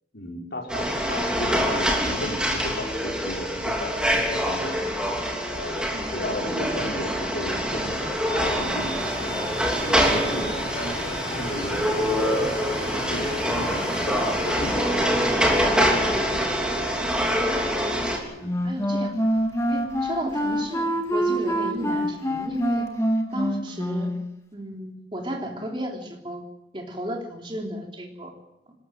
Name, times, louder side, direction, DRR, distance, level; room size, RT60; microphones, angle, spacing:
voice 1, 0.1-4.8 5.5-9.3 9.8-12.5 13.1-16.1 16.7-16.9 18.4-18.5, left 1 dB, 65° left, 0 dB, 5.6 m, -35 dB
sound 1, 0.7-18.2, equal, 5° right, 3.2 m, -25 dB
sound 2, 4.7-23.0, left 1 dB, 35° left, 4.0 m, -40 dB
Wind instrument woodwind instrument, 18.4-24.3, equal, 15° left, 2.1 m, -26 dB
voice 2, 18.6-19.1 19.7-22.9 23.3-24.1 24.5-26.4 26.7-28.3, equal, 30° right, 1 dB, 3.3 m, -33 dB
26.0 x 13.5 x 7.8 m, 0.87 s
head